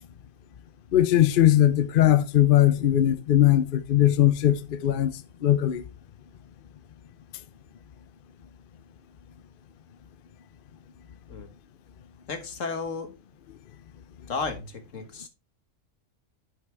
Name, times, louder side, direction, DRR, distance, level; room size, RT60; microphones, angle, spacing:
voice 1, 0.9-5.1 5.4-5.8, left 12 dB, 55° left, 0.7 m, -20 dB
voice 2, 12.3-13.1 14.3-15.3, left 4 dB, 75° left, 1.8 m, -33 dB
10.0 x 5.8 x 3.4 m
omnidirectional pair, 1.3 m